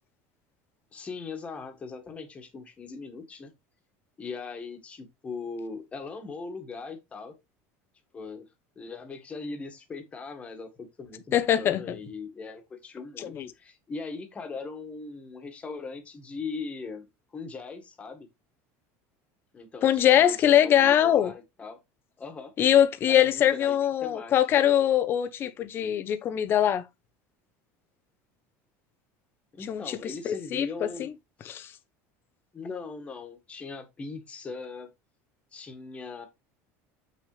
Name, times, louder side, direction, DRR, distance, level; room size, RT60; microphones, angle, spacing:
voice 1, 0.9-3.5 4.2-7.3 8.1-8.5 8.8-17.1 17.3-18.3 19.5-21.8 22.2-22.5 23.1-24.3 29.5-31.1 32.5-34.9 35.5-36.3, left 4 dB, 20° left, 1.7 m, -40 dB
voice 2, 11.3-12.0 13.2-13.5 19.8-21.3 22.6-26.8 29.7-31.1 31.5-31.7, left 10 dB, 35° left, 0.9 m, -23 dB
7.4 x 6.2 x 3.3 m
cardioid pair, 155°, 7 cm